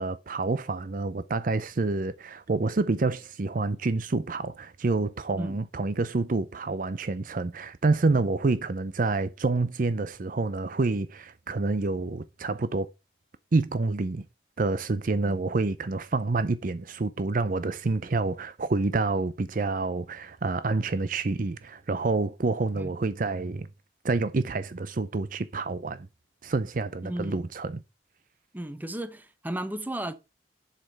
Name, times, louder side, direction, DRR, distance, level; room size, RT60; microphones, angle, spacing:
voice 1, 0.0-12.9 13.5-14.2 14.6-23.7 24.0-26.1 26.4-27.8, right 3 dB, 50° right, 0.5 m, -28 dB
voice 2, 27.0-27.4 28.5-30.1, right 1 dB, 10° right, 0.9 m, -34 dB
7.8 x 6.7 x 5.3 m
head